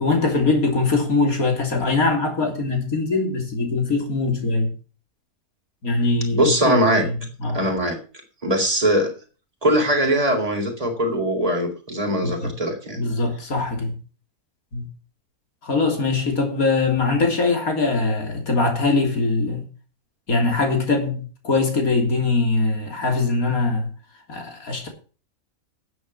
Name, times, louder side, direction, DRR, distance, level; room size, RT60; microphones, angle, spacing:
voice 1, 0.0-4.7 5.8-7.6 12.2-12.5 13.0-13.9 14.7-14.9 15.6-19.7 20.3-23.9 24.3-24.9, left 3 dB, 70° left, 3.6 m, -22 dB
voice 2, 6.3-7.0 7.5-8.0 8.4-9.1 9.6-13.0, right 1 dB, 25° right, 4.0 m, -21 dB
12.0 x 7.8 x 7.2 m
omnidirectional pair, 1.5 m